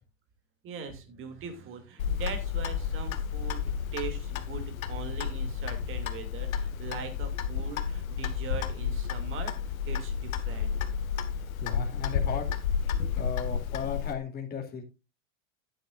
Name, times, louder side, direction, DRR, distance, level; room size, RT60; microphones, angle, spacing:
voice 1, 0.6-9.5 9.9-10.7, right 6 dB, 30° right, 2.5 m, -41 dB
Clock, 2.0-14.1, left 7 dB, 85° left, 1.5 m, -31 dB
voice 2, 11.6-12.6 13.2-14.8, left 6 dB, 25° left, 2.7 m, -36 dB
11.5 x 10.0 x 2.5 m
supercardioid pair, 135°, 40 cm